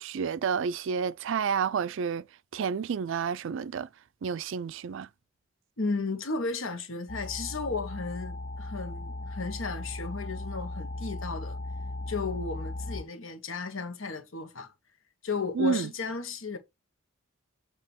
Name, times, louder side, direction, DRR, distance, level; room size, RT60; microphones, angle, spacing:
voice 1, 0.0-2.3 2.5-3.9 4.2-5.1 15.5-15.9, right 6 dB, 65° right, 0.4 m, -30 dB
voice 2, 5.8-11.6 12.1-14.7 15.2-16.6, left 4 dB, 70° left, 1.4 m, -34 dB
sound 1, 7.1-13.0, left 2 dB, 40° left, 0.6 m, -37 dB
7.4 x 2.9 x 6.0 m
head